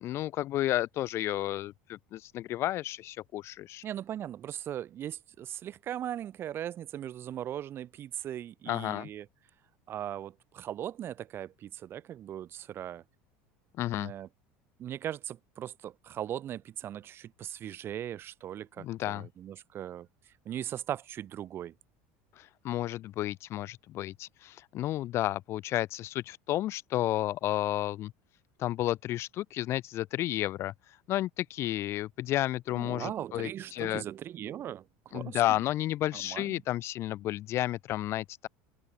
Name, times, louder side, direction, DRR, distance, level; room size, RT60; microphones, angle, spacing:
voice 1, 0.0-3.8 8.7-9.1 13.8-14.1 18.8-19.3 22.4-28.1 28.6-30.7 31.1-34.0 35.1-38.5, left 14 dB, 45° left, 0.6 m, -32 dB
voice 2, 3.8-9.3 9.9-13.0 14.0-14.3 14.8-20.1 20.5-21.7 32.7-35.6 36.1-36.6, right 11 dB, 40° right, 3.8 m, -39 dB
open air
supercardioid pair, 135°, 6 cm